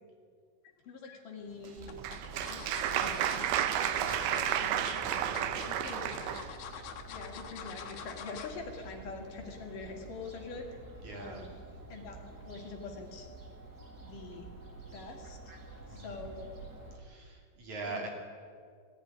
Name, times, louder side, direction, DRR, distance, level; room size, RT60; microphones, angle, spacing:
sound 1, 0.6-1.2 1.9-8.6 9.0-9.2 9.5-9.6, left 8 dB, 80° left, 3.2 m, -46 dB
voice 1, 0.9-2.0 2.4-3.7 4.2-4.8 5.3-6.4 7.1-10.8 11.1-11.6 11.9-13.3 14.0-14.5 14.9-15.4 15.9-16.5 17.8-18.1, left 4 dB, 65° left, 2 dB, 3.6 m, -45 dB
Applause, 1.6-6.5, right 11 dB, 85° right, 2.8 m, -32 dB
Fowl, 1.8-17.0, right 3 dB, 30° right, 2.4 m, -49 dB
voice 2, 4.0-4.7 5.0-5.8 11.0-11.4 15.9-16.2 16.9-18.1, right 3 dB, 50° right, 0 dB, 3.9 m, -43 dB
17.0 x 15.5 x 9.6 m, 2.1 s
omnidirectional pair, 4.3 m